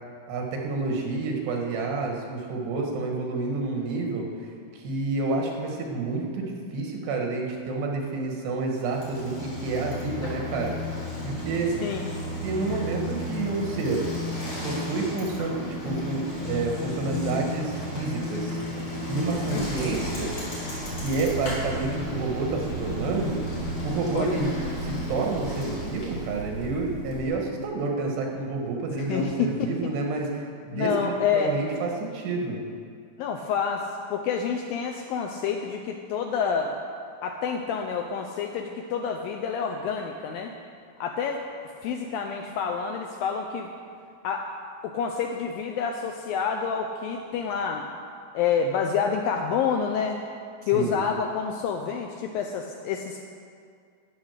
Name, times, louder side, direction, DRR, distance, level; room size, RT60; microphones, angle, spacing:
voice 1, 0.3-4.3 4.7-10.8 11.2-11.8 12.4-14.1 14.6-18.6 19.1-20.3 21.0-23.4 23.8-24.5 24.8-32.6 50.7-51.0, right 3 dB, 85° right, 1 dB, 3.7 m, -29 dB
Bicycle, 8.8-26.3, left 1 dB, 35° left, 4.2 m, -33 dB
sound 1, 20.7-27.2, right 3 dB, 40° right, 3.2 m, -39 dB
voice 2, 24.1-24.4 29.0-29.7 30.7-31.5 33.2-36.8 37.2-40.5 41.0-41.4 41.8-43.7 44.2-44.5 44.8-47.9 48.3-50.2 50.6-53.2, left 6 dB, 85° left, 3 dB, 2.1 m, -28 dB
11.0 x 9.5 x 6.5 m, 2.2 s
omnidirectional pair, 4.7 m